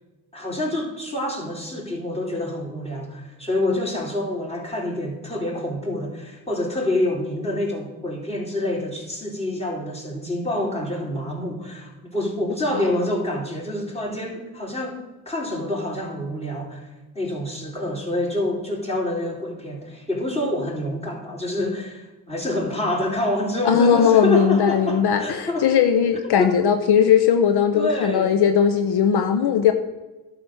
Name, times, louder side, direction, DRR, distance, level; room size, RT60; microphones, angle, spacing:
voice 1, 0.3-15.0 15.2-16.9 17.1-25.7 26.4-26.5 27.7-28.4, left 1 dB, 15° left, 0 dB, 3.5 m, -27 dB
voice 2, 23.6-29.7, left 8 dB, 70° left, 7 dB, 0.8 m, -18 dB
11.0 x 5.1 x 6.0 m, 1.2 s
supercardioid pair, 45°, 40 cm